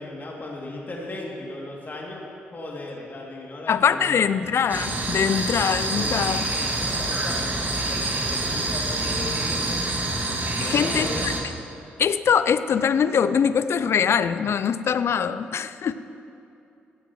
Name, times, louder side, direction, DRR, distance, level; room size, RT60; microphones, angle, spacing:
voice 1, 0.0-2.2 2.5-4.3 5.9-9.9 10.6-11.4, left 2 dB, 40° left, -3 dB, 2.7 m, -37 dB
voice 2, 3.7-6.4 10.6-11.3 12.0-15.9, left 7 dB, 55° left, 13 dB, 0.5 m, -22 dB
sound 1, 4.7-11.4, right 2 dB, 35° right, 2.4 m, -26 dB
17.0 x 13.5 x 3.2 m, 2.8 s
hypercardioid pair, 45°, 5 cm